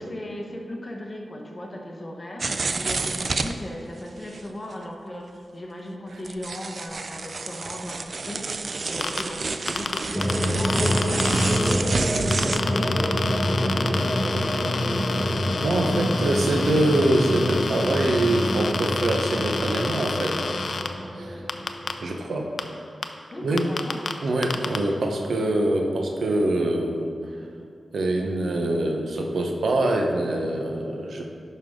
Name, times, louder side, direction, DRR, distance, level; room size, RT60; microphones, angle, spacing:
voice 1, 0.0-11.8 12.5-13.2 13.6-14.9 22.0-22.2 23.3-24.2 24.5-24.7 25.2-25.5, left 1 dB, 30° left, 0 dB, 1.2 m, -38 dB
sound 1, 2.4-3.6 4.3-4.4 4.7-4.8 5.1-5.2 6.2-12.6, right 3 dB, 55° right, 0.4 m, -29 dB
sound 2, 9.0-9.2 9.7-11.7 12.3-20.9 21.5-21.9 22.6-22.7 23.0-23.1 23.6-24.1 24.4-24.8, left 4 dB, 65° left, 0.5 m, -29 dB
sound 3, 10.1-22.2, equal, ahead, 1.0 m, -26 dB
voice 2, 15.6-20.4 21.1-21.4 22.0-22.5 23.4-23.7 24.2-27.1 27.9-31.3, right 1 dB, 80° right, 2 dB, 0.9 m, -24 dB
11.0 x 5.6 x 3.7 m, 2.3 s
cardioid pair, 75°, 0 cm